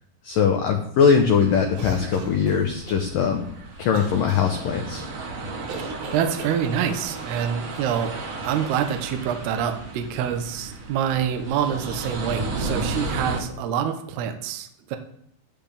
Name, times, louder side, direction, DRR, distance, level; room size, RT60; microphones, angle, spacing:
voice 1, 0.2-3.4 3.8-5.0, left 6 dB, 85° left, 3 dB, 1.9 m, -21 dB
sound 1, 1.0-13.4, right 2 dB, 50° right, 2.0 m, -34 dB
sound 2, 1.7-3.0 3.9-4.4 5.7-7.0, right 4 dB, 90° right, 4.6 m, -38 dB
voice 2, 6.1-8.2 8.4-15.0, right 8 dB, 75° right, 6 dB, 2.7 m, -26 dB
16.0 x 10.5 x 3.5 m, 0.68 s
omnidirectional pair, 5.4 m